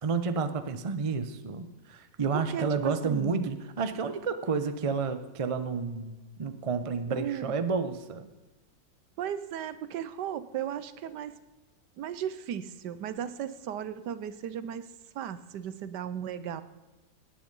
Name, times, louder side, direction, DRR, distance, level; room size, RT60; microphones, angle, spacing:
voice 1, 0.0-8.3, right 5 dB, 40° right, 10 dB, 0.4 m, -30 dB
voice 2, 2.3-3.5 7.1-7.5 9.2-11.4 12.0-14.9 15.1-16.6, right 9 dB, 75° right, 14 dB, 1.3 m, -36 dB
18.0 x 9.0 x 5.4 m, 1.2 s
omnidirectional pair, 1.9 m